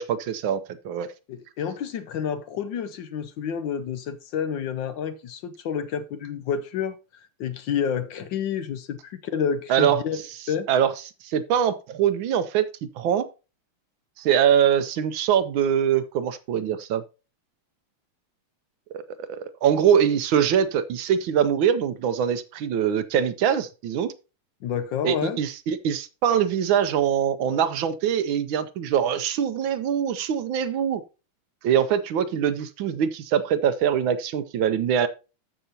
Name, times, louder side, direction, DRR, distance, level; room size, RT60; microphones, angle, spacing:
voice 1, 0.0-1.1 9.7-10.0 10.7-10.9 11.2-13.3 14.2-17.0 18.9-24.1 25.0-31.0 31.6-35.1, right 8 dB, 75° right, 1.3 m, -23 dB
voice 2, 1.3-10.2 10.5-10.7 24.6-25.4, left 7 dB, 70° left, 1.2 m, -29 dB
13.5 x 6.0 x 2.8 m
omnidirectional pair, 2.4 m